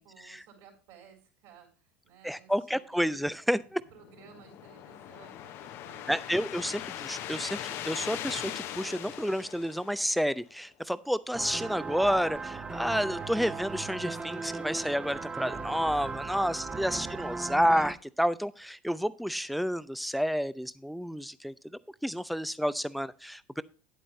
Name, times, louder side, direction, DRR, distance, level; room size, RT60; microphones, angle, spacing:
voice 1, 0.0-3.3 3.9-6.6 16.6-17.5, right 7 dB, 55° right, 1 dB, 4.2 m, -56 dB
voice 2, 2.2-3.8 6.1-21.5 22.0-23.6, equal, ahead, 17 dB, 0.5 m, -30 dB
sound 1, 3.9-10.4, left 11 dB, 50° left, 0.9 m, -40 dB
sound 2, 11.3-17.9, right 4 dB, 20° right, 1.1 m, -37 dB
10.0 x 8.1 x 3.2 m, 0.37 s
figure-of-eight pair, 70°, 6 cm